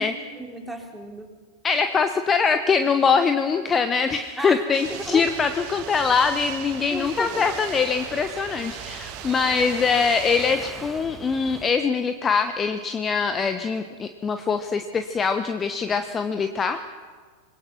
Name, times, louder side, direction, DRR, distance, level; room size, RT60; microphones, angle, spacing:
voice 1, 0.0-1.3 4.4-5.3 6.9-7.5, right 1 dB, 5° right, 1 dB, 3.7 m, -34 dB
voice 2, 1.6-16.8, left 5 dB, 20° left, 9 dB, 1.1 m, -23 dB
sound 1, 4.7-10.6, right 13 dB, 45° right, 1.5 m, -39 dB
sound 2, 4.8-11.7, right 5 dB, 20° right, 1.9 m, -42 dB
26.5 x 21.5 x 6.1 m, 1.5 s
figure-of-eight pair, 90°, 0 cm